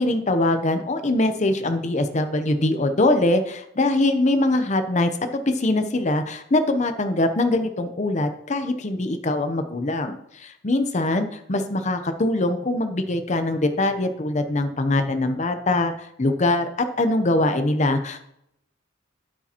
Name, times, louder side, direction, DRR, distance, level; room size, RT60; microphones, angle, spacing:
voice 1, 0.0-18.2, left 2 dB, 35° left, 7 dB, 0.7 m, -23 dB
8.5 x 8.3 x 2.9 m, 0.76 s
head